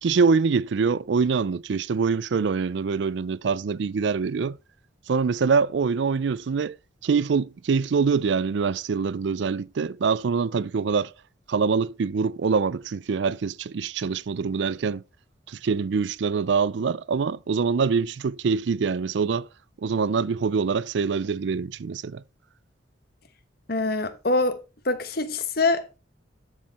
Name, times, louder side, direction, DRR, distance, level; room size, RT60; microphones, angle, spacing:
voice 1, 0.0-4.6 5.1-6.8 7.0-11.1 11.5-15.0 15.5-19.5 19.8-22.2, right 5 dB, 70° right, 0.4 m, -24 dB
voice 2, 23.7-24.6 24.8-26.0, left 2 dB, 55° left, 1.0 m, -24 dB
13.0 x 4.8 x 4.2 m
head